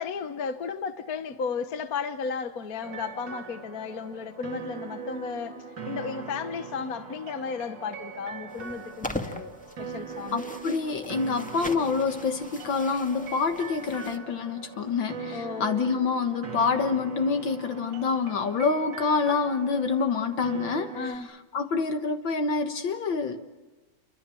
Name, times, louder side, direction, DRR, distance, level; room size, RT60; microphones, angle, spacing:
voice 1, 0.0-9.5 9.8-10.4 15.3-15.7 20.9-21.3, left 5 dB, 50° left, 1.6 m, -34 dB
sound 1, 2.8-21.2, right 5 dB, 60° right, 2.8 m, -41 dB
sound 2, 8.5-14.2, left 1 dB, 5° left, 1.9 m, -40 dB
voice 2, 10.3-21.2 21.5-23.4, left 5 dB, 70° left, 2.1 m, -27 dB
29.5 x 25.0 x 7.8 m
omnidirectional pair, 2.2 m